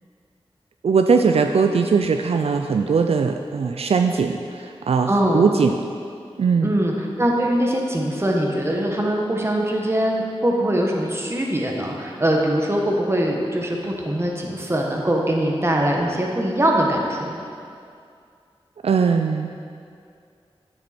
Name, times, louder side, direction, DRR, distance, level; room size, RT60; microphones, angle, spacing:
voice 1, 0.8-5.8 6.4-6.8 18.8-19.5, right 5 dB, 80° right, 5 dB, 0.4 m, -20 dB
voice 2, 5.1-5.5 6.6-17.4, right 1 dB, 25° right, -1 dB, 1.3 m, -22 dB
9.2 x 7.3 x 4.3 m, 2.3 s
wide cardioid pair, 75°, 10 cm